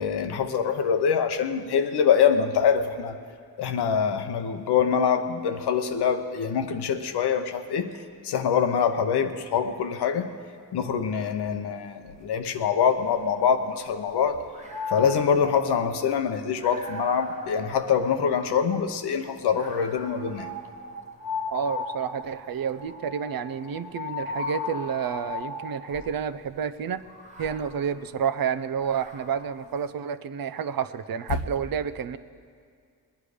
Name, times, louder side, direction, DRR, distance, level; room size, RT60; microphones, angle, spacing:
voice 1, 0.0-3.2 3.6-10.3 10.7-14.4 14.9-20.5, left 7 dB, 90° left, 8 dB, 0.8 m, -24 dB
sound 1, 12.9-14.1 14.5-18.9 19.6-26.3 27.0-29.6, left 3 dB, 20° right, 1.3 m, -37 dB
voice 2, 21.5-27.0 27.4-32.2, right 7 dB, 65° right, 13 dB, 0.6 m, -30 dB
20.5 x 9.6 x 5.0 m, 2.2 s
cardioid pair, 60°, 38 cm